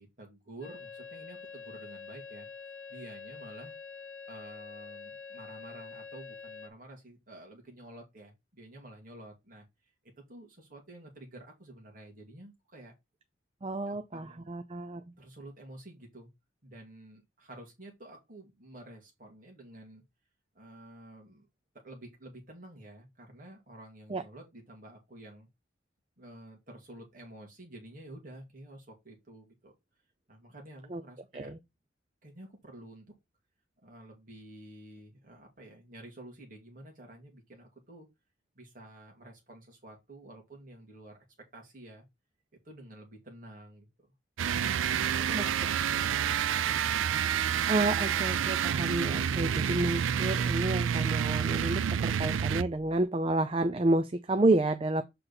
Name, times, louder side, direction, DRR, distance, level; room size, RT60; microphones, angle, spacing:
voice 1, 0.0-2.5 2.9-3.7 4.3-9.7 10.3-12.9 13.9-14.5 15.2-16.3 16.6-20.0 20.5-21.5 21.8-25.5 26.2-29.7 30.3-31.5 32.2-33.1 33.8-38.1 38.5-41.2 41.5-42.0 42.6-44.1 44.7-46.2, right 1 dB, 45° right, 2.2 m, -50 dB
sound 1, 0.6-6.7, left 5 dB, 80° left, 1.0 m, -46 dB
voice 2, 13.6-15.0 24.1-24.2 30.9-31.0 31.3-31.6 45.3-45.4 47.7-55.0, right 2 dB, 30° right, 0.4 m, -30 dB
sound 2, 44.4-52.9, right 8 dB, 85° right, 0.4 m, -29 dB
6.9 x 4.1 x 4.1 m
head